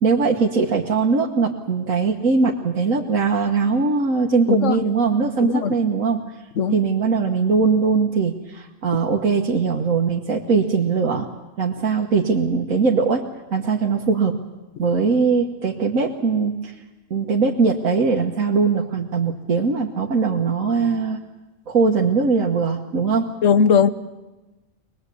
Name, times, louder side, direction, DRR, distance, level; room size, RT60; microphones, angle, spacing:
voice 1, 0.0-6.2 6.7-11.3 11.6-14.4 14.8-16.7 17.1-21.2 21.7-23.3, right 4 dB, 85° right, -1 dB, 1.7 m, -20 dB
voice 2, 4.5-4.8 5.4-5.7 6.6-6.8 23.4-23.9, left 6 dB, 70° left, 12 dB, 1.3 m, -18 dB
23.0 x 20.5 x 8.4 m, 1.1 s
omnidirectional pair, 1.4 m